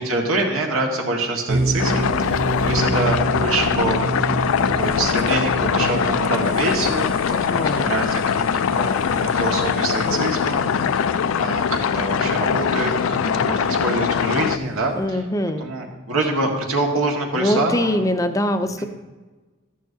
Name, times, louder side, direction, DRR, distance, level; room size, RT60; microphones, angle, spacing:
voice 1, 0.0-4.0 4.8-10.7 10.9-15.2 15.6-18.0 18.8-18.9, right 2 dB, 85° right, 0 dB, 1.7 m, -25 dB
sound 1, 1.5-15.1, right 2 dB, 65° right, 0.6 m, -30 dB
sound 2, 1.8-14.6, left 7 dB, 75° left, 0.3 m, -22 dB
voice 2, 7.3-7.9 15.0-15.7 17.3-18.8, left 1 dB, 15° left, 8 dB, 0.5 m, -23 dB
13.0 x 11.0 x 2.8 m, 1.3 s
head